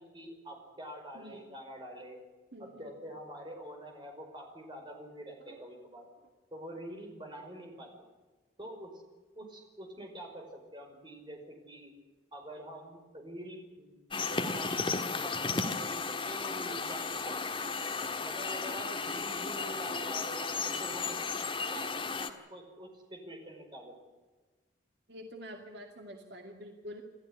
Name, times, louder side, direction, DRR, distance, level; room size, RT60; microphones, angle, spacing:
voice 1, 0.0-2.2 2.6-6.1 6.5-7.9 8.6-9.0 9.4-11.9 12.3-14.9 15.2-17.7 18.2-21.2 21.7-23.9, equal, 25° right, 2 dB, 5.3 m, -46 dB
voice 2, 2.5-2.9 5.5-5.6 18.2-18.3 25.1-27.0, equal, 60° right, 3 dB, 2.4 m, -47 dB
sound 1, 14.1-22.3, left 4 dB, 25° left, 1.6 m, -34 dB
27.5 x 13.5 x 9.9 m, 1.3 s
head